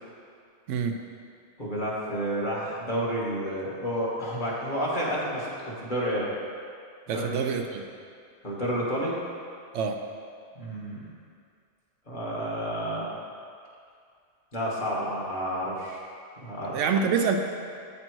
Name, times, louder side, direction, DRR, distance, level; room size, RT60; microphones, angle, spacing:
voice 1, 1.6-6.3 7.1-7.5 8.4-9.1 10.5-11.0 12.1-13.1 14.5-16.0 16.4-16.9, equal, 45° left, -5 dB, 1.4 m, -30 dB
voice 2, 7.1-7.8 9.7-10.0 16.7-17.4, right 6 dB, 90° right, 4 dB, 0.9 m, -26 dB
8.8 x 3.4 x 4.5 m, 2.3 s
omnidirectional pair, 1.2 m